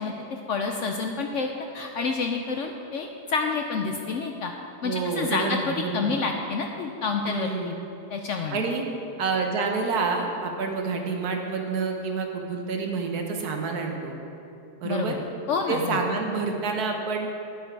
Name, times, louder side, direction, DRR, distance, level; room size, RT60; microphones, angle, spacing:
voice 1, 0.0-4.5 4.8-7.8 8.1-8.6 14.8-15.2 15.5-16.0, left 4 dB, 65° left, 3 dB, 0.8 m, -28 dB
voice 2, 4.8-6.2 7.3-7.7 8.5-8.8 9.2-14.1 14.8-15.2 15.7-17.3, right 4 dB, 70° right, 2 dB, 1.5 m, -28 dB
9.8 x 8.7 x 4.6 m, 2.7 s
omnidirectional pair, 1.7 m